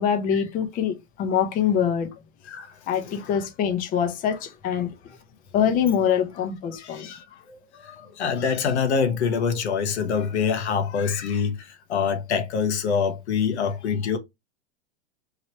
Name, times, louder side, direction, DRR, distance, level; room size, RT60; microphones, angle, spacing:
voice 1, 0.0-2.1 2.9-4.9 5.5-7.1, left 8 dB, 25° left, 0.7 m, -24 dB
voice 2, 6.8-14.2, left 6 dB, 85° left, 1.0 m, -25 dB
3.2 x 2.9 x 2.8 m
hypercardioid pair, 130°, 33 cm